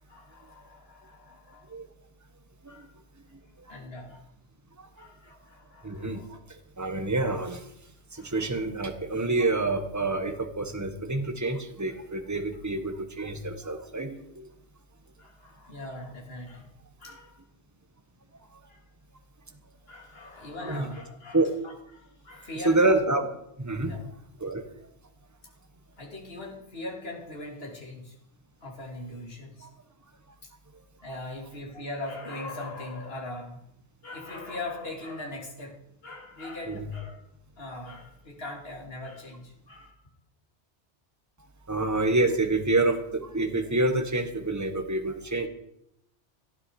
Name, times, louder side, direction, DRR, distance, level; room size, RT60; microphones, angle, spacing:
voice 1, 0.1-1.7 2.7-2.9 3.7-4.2 5.0-6.3 8.1-8.5 15.2-16.7 17.0-17.3 18.7-18.8 19.9-21.4 21.9-23.0 23.8-24.0 26.0-28.1 28.6-29.7 31.0-33.6 34.0-35.7 36.0-37.2 37.6-40.0, left 2 dB, 60° left, -1 dB, 3.2 m, -40 dB
voice 2, 5.8-6.2 6.8-7.7 8.1-14.4 20.6-20.9 21.3-21.5 22.6-23.3 23.6-24.0 24.4-24.6 36.7-36.9 41.7-45.5, right 2 dB, 15° right, 7 dB, 1.4 m, -27 dB
18.0 x 12.5 x 4.9 m, 0.78 s
omnidirectional pair, 1.2 m